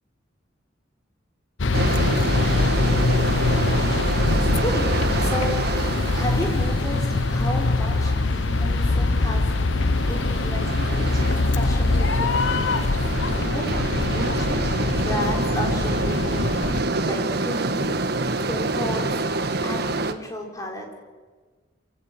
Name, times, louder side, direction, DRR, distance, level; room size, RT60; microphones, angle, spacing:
sound 1, 1.6-16.8, left 3 dB, 85° left, 0.9 m, -23 dB
sound 2, 1.7-20.1, right 2 dB, 60° right, 1.4 m, -27 dB
voice 1, 4.3-4.9 5.2-5.6 6.1-9.5 10.1-12.4 13.4-14.6 15.0-16.5 16.8-18.0 18.5-19.1 19.6-20.9, equal, 20° left, 0 dB, 4.7 m, -33 dB
27.5 x 17.0 x 7.6 m, 1.4 s
head